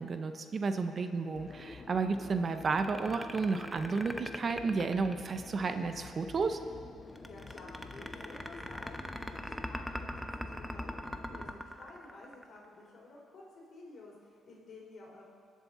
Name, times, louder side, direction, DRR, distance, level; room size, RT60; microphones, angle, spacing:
voice 1, 0.0-6.6, right 4 dB, 45° right, 8 dB, 0.7 m, -32 dB
sound 1, 1.3-11.5, left 3 dB, 35° left, 1.0 m, -49 dB
sound 2, 2.6-5.7 7.2-12.7, equal, ahead, 0.7 m, -41 dB
voice 2, 7.3-15.3, left 2 dB, 60° left, -3 dB, 3.4 m, -52 dB
20.5 x 7.4 x 4.2 m, 2.2 s
cardioid pair, 90°, 0 cm